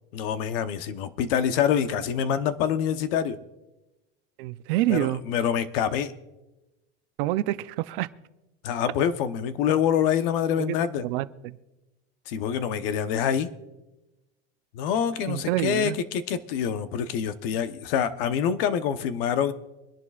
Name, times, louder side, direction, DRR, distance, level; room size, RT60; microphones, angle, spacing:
voice 1, 0.1-3.4 4.9-6.1 8.6-11.0 12.3-13.5 14.7-19.5, left 8 dB, 60° left, 1.0 m, -26 dB
voice 2, 4.4-5.2 7.2-8.1 10.6-10.7 11.0-11.6 15.3-16.0, right 16 dB, 55° right, 0.6 m, -27 dB
24.5 x 11.0 x 2.4 m
supercardioid pair, 155°, 32 cm